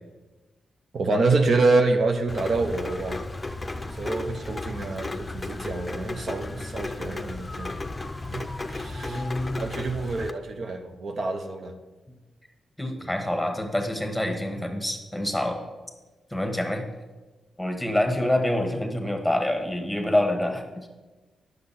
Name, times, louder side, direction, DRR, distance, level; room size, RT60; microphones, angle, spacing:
voice 1, 0.9-3.2 3.8-7.7 8.3-8.4 8.7-9.3 9.6-11.7 13.0-13.1, right 3 dB, 60° right, 5 dB, 0.8 m, -26 dB
Rain, 2.3-10.3, left 2 dB, 20° left, 0.6 m, -34 dB
voice 2, 9.0-9.6 12.8-15.6 16.3-16.8 17.6-20.9, left 1 dB, 5° left, 4 dB, 1.3 m, -26 dB
9.5 x 6.6 x 4.2 m, 1.2 s
cardioid pair, 80°, 0 cm